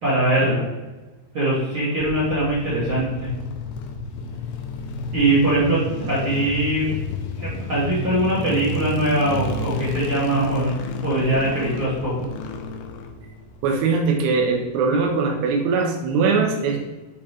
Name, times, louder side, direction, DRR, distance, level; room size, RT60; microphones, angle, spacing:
voice 1, 0.0-0.7 1.3-3.3 5.1-6.9 7.4-10.7 11.0-12.1, right 1 dB, 40° right, -9 dB, 2.1 m, -21 dB
sound 1, 2.0-14.2, left 3 dB, 80° left, 2.5 m, -31 dB
voice 2, 13.6-16.8, right 4 dB, 90° right, 1 dB, 2.9 m, -21 dB
10.0 x 4.1 x 3.0 m, 1.2 s
omnidirectional pair, 4.5 m